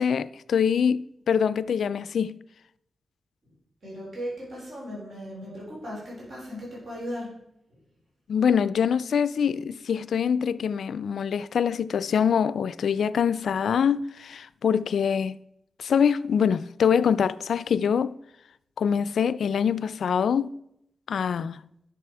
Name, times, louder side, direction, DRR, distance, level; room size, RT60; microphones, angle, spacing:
voice 1, 0.0-2.3 8.3-15.4 15.8-18.2 18.8-20.5 21.1-21.6, left 7 dB, 90° left, 0.3 m, -24 dB
voice 2, 3.8-7.3 7.7-7.8, equal, 55° right, 4.0 m, -37 dB
11.0 x 6.6 x 4.6 m
wide cardioid pair, 155°, 0 cm